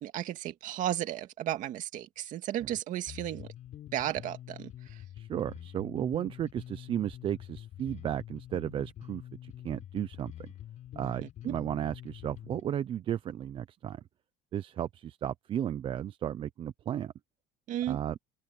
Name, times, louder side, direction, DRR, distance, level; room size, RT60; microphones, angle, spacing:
voice 1, 0.0-3.5 3.9-4.7 11.4-11.5 17.7-18.0, right 12 dB, 45° right, 2.2 m, -34 dB
Bass guitar, 3.1-12.7, left 12 dB, 40° left, 4.7 m, -46 dB
voice 2, 5.2-10.5 11.0-14.0 14.5-17.1 17.9-18.2, right 10 dB, 30° right, 0.5 m, -34 dB
open air
cardioid pair, 175°, 19 cm